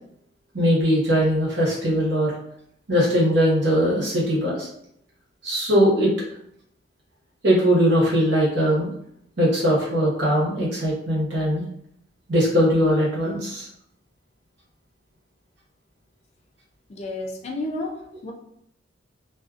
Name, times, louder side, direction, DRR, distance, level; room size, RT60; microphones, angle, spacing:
voice 1, 0.5-2.3 2.9-4.7 5.4-6.1 7.4-8.9 9.4-11.6 12.3-13.7, equal, 65° right, -5 dB, 1.1 m, -20 dB
voice 2, 16.9-18.3, left 2 dB, 35° left, 1 dB, 0.4 m, -31 dB
2.4 x 2.3 x 2.4 m, 0.72 s
head